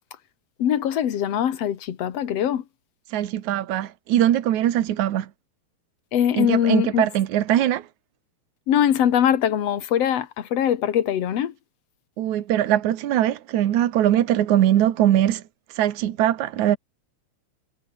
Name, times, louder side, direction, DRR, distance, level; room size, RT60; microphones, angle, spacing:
voice 1, 0.6-2.6 6.1-7.1 8.7-11.5, left 10 dB, 60° left, 2.7 m, -22 dB
voice 2, 3.1-5.3 6.4-7.9 12.2-15.4 15.7-16.8, right 12 dB, 80° right, 2.7 m, -21 dB
omnidirectional pair, 3.3 m